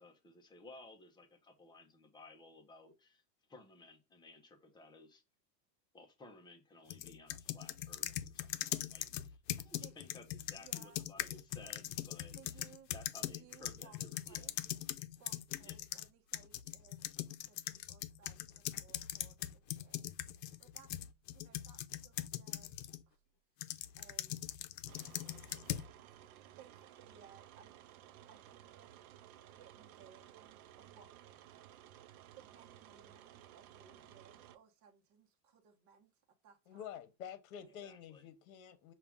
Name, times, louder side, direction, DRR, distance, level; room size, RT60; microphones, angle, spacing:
voice 1, 0.0-3.2 3.5-5.2 5.9-12.7 12.9-14.5 15.6-15.8 37.8-38.3, left 2 dB, 10° left, 0.5 m, -57 dB
sound 1, 6.9-16.1 16.3-23.0 23.6-25.9, left 13 dB, 80° left, 0.6 m, -41 dB
voice 2, 10.5-11.1 12.3-12.9 13.3-14.6 15.2-17.2 17.5-20.1 20.6-20.9 21.3-23.2 23.9-24.4 26.6-27.9 28.3-29.2 29.6-31.1 32.3-36.1 36.4-37.0 37.6-38.0, right 7 dB, 35° right, 0.9 m, -62 dB
sound 2, 24.9-34.6, right 12 dB, 60° right, 0.6 m, -57 dB
voice 3, 36.7-38.9, left 9 dB, 60° left, 1.0 m, -49 dB
5.7 x 2.4 x 3.5 m
supercardioid pair, 130°, 49 cm